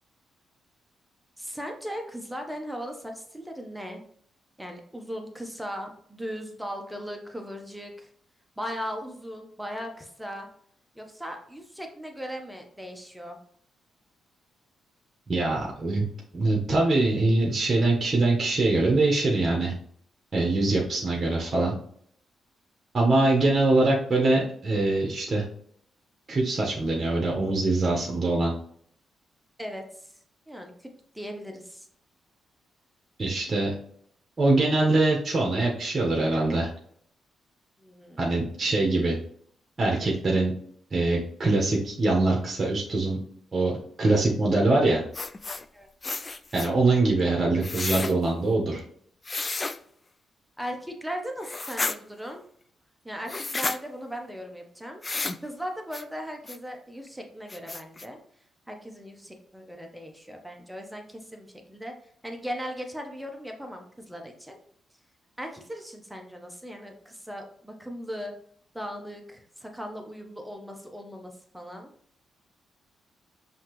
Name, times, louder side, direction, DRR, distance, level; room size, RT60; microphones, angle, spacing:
voice 1, 1.4-4.0 4.6-8.1 8.6-10.5 10.9-13.4 29.6-30.1 30.5-31.9 37.8-38.2 45.7-45.9 50.6-52.4 53.0-55.0 55.4-58.2 58.7-61.9 62.2-64.6 65.4-68.3 68.7-71.9, equal, 5° right, 3 dB, 1.0 m, -38 dB
voice 2, 15.3-16.0 16.3-19.7 20.3-21.7 22.9-25.4 26.3-28.5 33.2-33.7 34.4-36.7 38.2-39.2 39.8-40.5 40.9-43.2 43.5-43.7 44.0-45.0 46.5-48.8, right 2 dB, 35° right, -2 dB, 1.3 m, -23 dB
sound 1, 45.1-45.7 46.0-46.7 47.6-48.1 49.3-49.8 51.4-52.0 53.3-53.8 55.0-55.4 55.9-56.0 56.5-56.6 57.1-57.2 57.5-58.1, left 3 dB, 30° left, 0.3 m, -31 dB
5.6 x 2.9 x 3.1 m, 0.62 s
supercardioid pair, 65°, 0 cm